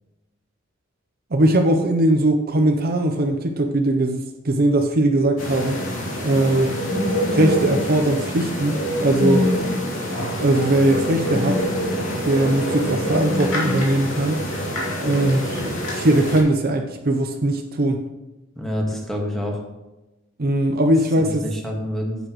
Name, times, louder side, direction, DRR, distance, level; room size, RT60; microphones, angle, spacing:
voice 1, 1.3-5.8 6.2-6.7 7.3-9.5 10.4-11.6 12.2-14.4 15.0-18.0 20.4-21.4, right 1 dB, 50° right, 4 dB, 0.7 m, -20 dB
sound 1, 5.4-16.4, equal, 85° left, 2.5 m, -25 dB
voice 2, 18.6-19.6 21.2-22.2, equal, ahead, -1 dB, 1.7 m, -27 dB
9.8 x 8.2 x 3.1 m, 1.0 s
head